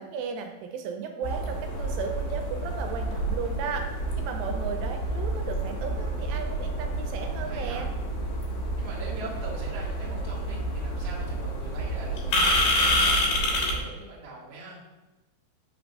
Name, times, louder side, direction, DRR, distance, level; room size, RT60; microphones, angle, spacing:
voice 1, 0.0-3.8 4.2-7.9, right 6 dB, 85° right, 4 dB, 2.8 m, -35 dB
sound 1, 1.2-13.8, equal, 75° left, 3.3 m, -28 dB
voice 2, 7.1-7.8 8.8-14.8, right 2 dB, 55° right, -5 dB, 1.9 m, -42 dB
6.5 x 3.4 x 5.3 m, 1.1 s
omnidirectional pair, 4.9 m